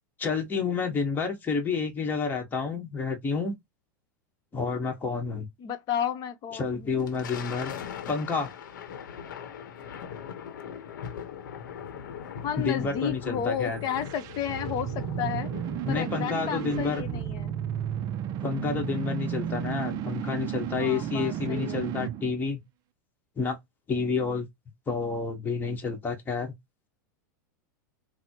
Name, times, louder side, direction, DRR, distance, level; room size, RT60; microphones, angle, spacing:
voice 1, 0.2-3.5 4.5-5.5 6.5-7.7 8.1-8.5 12.6-13.8 15.9-17.1 18.4-22.6 23.4-23.6 23.9-24.5 24.9-26.5, left 4 dB, 20° left, 1.1 m, -29 dB
voice 2, 5.6-7.0 12.4-15.5 15.9-17.6 20.8-21.9, left 9 dB, 40° left, 0.7 m, -32 dB
Thunder, 6.8-17.6, left 7 dB, 85° left, 0.8 m, -40 dB
sound 1, 13.7-22.3, right 10 dB, 40° right, 0.3 m, -33 dB
4.0 x 2.0 x 2.9 m
hypercardioid pair, 120°, 10 cm